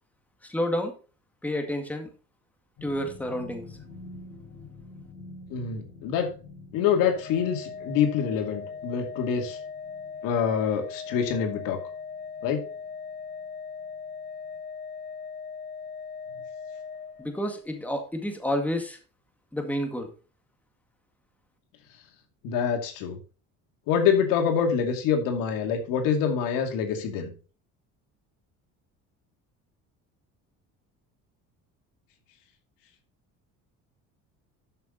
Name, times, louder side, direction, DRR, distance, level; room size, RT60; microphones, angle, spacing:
voice 1, 0.4-0.9 1.4-2.1 2.8-3.7 17.2-19.0 19.5-20.1, equal, 5° left, 5 dB, 1.9 m, -29 dB
sound 1, 2.8-13.5 13.8-14.1 14.5-14.6, left 3 dB, 55° left, 5.0 m, -48 dB
voice 2, 5.5-6.3 6.7-9.6 10.2-11.8 12.4-12.6 22.4-23.2 23.9-27.3, left 7 dB, 90° left, 4 dB, 2.5 m, -26 dB
Organ, 7.1-17.7, left 5 dB, 35° left, 1.0 m, -39 dB
12.5 x 6.0 x 4.0 m, 0.36 s
cardioid pair, 130°, 32 cm